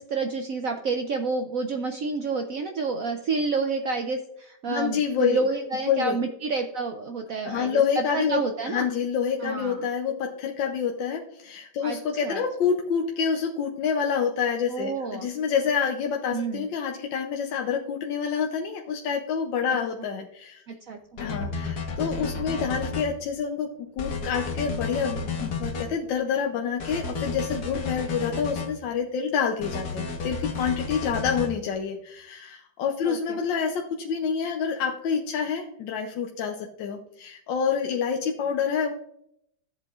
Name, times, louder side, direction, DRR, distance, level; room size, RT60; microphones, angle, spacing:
voice 1, 0.0-8.9 9.4-9.9 11.8-12.0 12.2-12.4 14.7-15.3 16.3-16.7 20.7-21.0 31.0-31.1 33.0-33.4, right 4 dB, 70° right, 5 dB, 0.8 m, -29 dB
voice 2, 4.7-5.4 5.9-6.2 7.4-8.4 8.7-20.6 21.2-23.7 24.0-38.9, left 6 dB, 75° left, 2 dB, 1.4 m, -27 dB
sound 1, 21.2-23.1 24.0-25.9 26.8-28.7 29.6-31.5, left 4 dB, 55° left, 1.6 m, -32 dB
14.0 x 7.6 x 2.4 m, 0.76 s
omnidirectional pair, 2.1 m